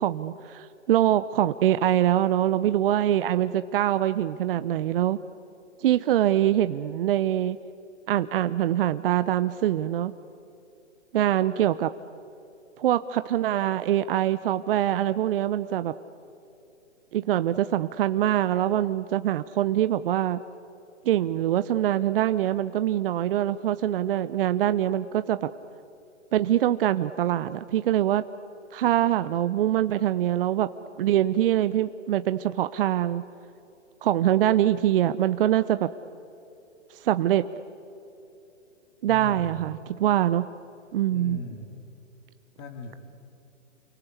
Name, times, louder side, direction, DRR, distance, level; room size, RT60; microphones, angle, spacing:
voice 1, 0.0-5.2 5.8-7.6 8.1-10.1 11.1-11.9 12.8-15.9 17.1-20.4 21.0-25.5 26.3-28.3 28.7-30.7 31.0-33.2 34.0-35.9 37.0-37.5 39.0-40.5 40.9-41.4, right 12 dB, 50° right, 12 dB, 0.8 m, -24 dB
voice 2, 39.0-39.6 41.1-41.8 42.6-43.0, left 4 dB, 35° left, 0 dB, 3.2 m, -38 dB
29.0 x 24.0 x 8.3 m, 2.9 s
hypercardioid pair, 130°, 37 cm